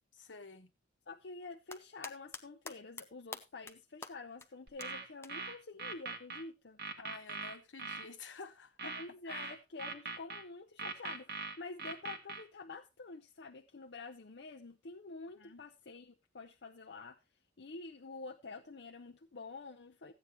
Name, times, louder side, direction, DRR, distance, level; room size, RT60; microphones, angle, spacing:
voice 1, 0.1-0.7 7.0-9.0 9.2-9.5 15.3-15.6, left 4 dB, 80° left, 1.2 m, -50 dB
voice 2, 1.1-6.8 9.0-17.2 17.6-20.1, left 3 dB, 65° left, 0.7 m, -48 dB
sound 1, 1.4-2.4 2.7-3.0 3.3-3.7 4.0-4.1 4.4-4.5 4.8-4.9 5.2-5.3 6.9-7.0, left 3 dB, 15° left, 0.7 m, -45 dB
sound 2, 4.7-6.4 6.8-8.1 8.8-10.4 10.8-12.4, right 4 dB, 55° right, 1.6 m, -41 dB
14.0 x 8.9 x 3.0 m
head